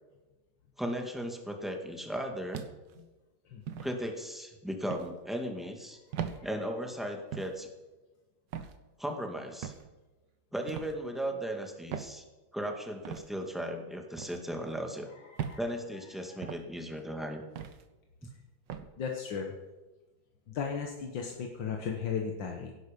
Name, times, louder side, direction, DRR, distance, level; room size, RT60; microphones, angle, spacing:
voice 1, 0.8-2.6 3.8-6.0 6.4-7.7 9.0-9.7 10.5-12.2 12.5-15.1 15.6-17.4 18.2-18.3, equal, ahead, 2 dB, 1.8 m, -36 dB
sound 1, 2.5-3.0 3.7-3.9 4.9-5.1 6.1-6.4 7.3-7.6 8.5-8.8 9.6-9.9 10.7-10.9 11.9-12.2 13.0-13.3 14.2-14.4 15.4-15.6 16.4-16.7 17.6-17.8 18.7-18.9, right 8 dB, 75° right, 1.6 m, -38 dB
voice 2, 16.2-16.5 19.0-19.5 20.5-22.7, left 6 dB, 80° left, 1 dB, 2.0 m, -35 dB
16.5 x 11.0 x 5.3 m, 1.1 s
omnidirectional pair, 2.0 m